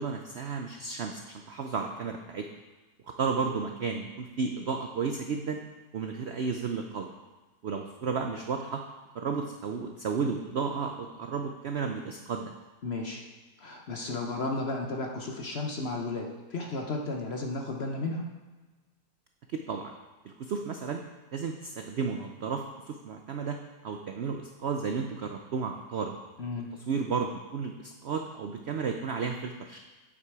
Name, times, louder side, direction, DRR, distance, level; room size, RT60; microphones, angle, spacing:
voice 1, 0.0-2.5 3.1-5.6 5.9-7.1 7.6-8.8 9.1-12.5 19.5-19.9 20.2-21.0 21.3-23.6 23.8-26.1 26.9-29.8, right 5 dB, 75° right, 4 dB, 0.6 m, -33 dB
voice 2, 12.8-13.2 13.6-18.3 26.4-26.7, left 2 dB, 50° left, 1 dB, 0.9 m, -33 dB
8.5 x 7.4 x 4.7 m, 1.3 s
omnidirectional pair, 1.9 m